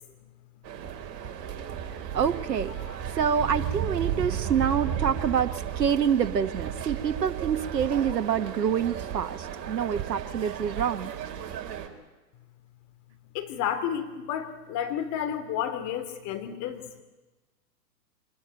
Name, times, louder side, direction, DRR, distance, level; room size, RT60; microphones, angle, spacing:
sound 1, 0.6-11.9, right 9 dB, 40° right, 3.9 m, -34 dB
voice 1, 1.9-2.7 3.2-11.1, right 8 dB, 85° right, 9 dB, 1.3 m, -27 dB
voice 2, 13.3-17.0, left 9 dB, 35° left, 8 dB, 3.4 m, -31 dB
24.5 x 21.0 x 8.8 m, 1.2 s
hypercardioid pair, 115°, 48 cm